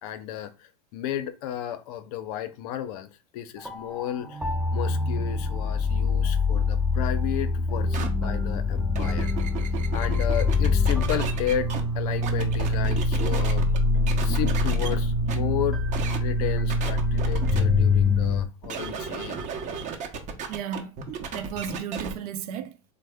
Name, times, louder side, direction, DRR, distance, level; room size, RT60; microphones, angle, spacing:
voice 1, 0.0-4.4 4.7-9.3 9.9-13.7 14.2-15.8 16.2-19.4, left 11 dB, 70° left, 0.6 m, -33 dB
sound 1, 3.6-18.5, left 3 dB, ahead, 0.5 m, -24 dB
sound 2, 7.9-8.1 8.8-11.8 12.2-13.8 14.1-14.9 15.3-15.4 15.9-16.2 16.7-17.6 18.6-22.1, right 6 dB, 40° right, 0.7 m, -34 dB
voice 2, 20.5-21.0 21.3-22.9, right 8 dB, 75° right, 0.6 m, -34 dB
3.4 x 2.1 x 3.4 m
supercardioid pair, 120°, 20 cm